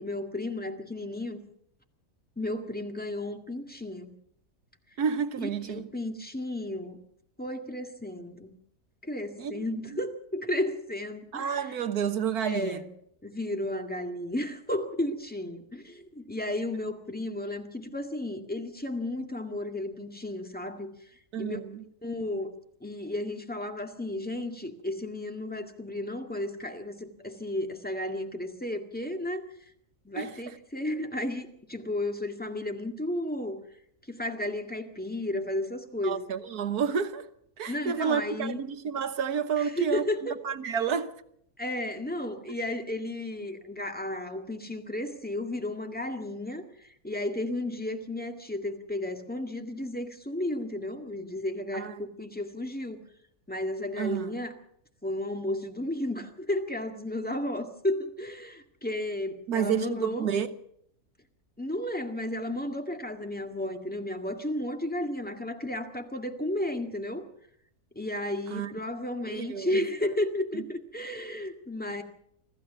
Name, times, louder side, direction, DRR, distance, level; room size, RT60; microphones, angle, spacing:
voice 1, 0.0-1.4 2.4-4.2 5.4-7.0 7.4-8.6 9.0-11.7 12.5-12.9 13.2-20.9 21.4-21.6 22.0-22.5 22.8-29.4 30.1-33.6 34.1-36.2 37.7-38.6 39.6-40.4 41.6-46.6 47.0-53.0 53.5-54.5 55.0-60.3 61.6-67.3 68.0-72.0, left 1 dB, 5° left, 2.0 m, -33 dB
voice 2, 5.0-5.9 9.4-9.6 9.9-10.0 11.3-12.8 21.3-21.8 30.2-30.3 36.0-37.3 37.6-40.0 40.4-41.1 42.5-42.6 51.7-52.1 54.0-54.4 59.5-60.5 68.5-68.7 69.3-69.8 70.5-70.6, right 7 dB, 75° right, 1.7 m, -30 dB
25.5 x 15.0 x 7.0 m
omnidirectional pair, 1.6 m